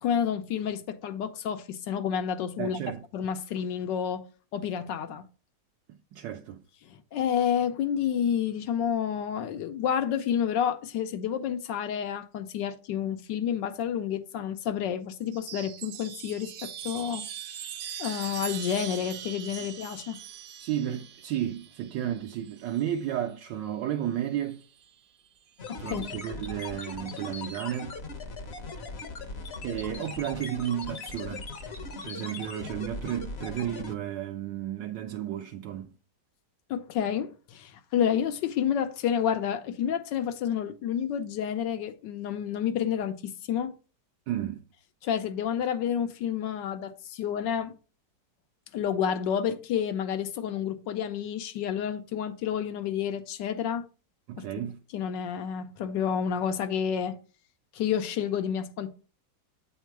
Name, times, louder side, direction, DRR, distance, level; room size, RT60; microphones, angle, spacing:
voice 1, 0.0-2.8 3.1-4.2 4.5-5.2 6.9-17.3 18.0-20.2 25.7-26.1 36.7-43.7 45.0-47.7 48.7-53.9 54.4-54.5 54.9-57.2 57.7-58.9, left 8 dB, 85° left, 1.3 m, -29 dB
voice 2, 2.6-3.0 5.9-6.6 20.6-24.6 25.8-27.9 29.6-31.5 32.0-35.9 44.3-44.6 54.3-54.8, right 11 dB, 80° right, 1.2 m, -33 dB
Chime, 15.2-23.1 24.3-24.9, right 9 dB, 65° right, 0.9 m, -41 dB
sound 1, 25.6-33.9, left 3 dB, 45° left, 0.9 m, -39 dB
8.2 x 3.6 x 4.5 m
omnidirectional pair, 1.9 m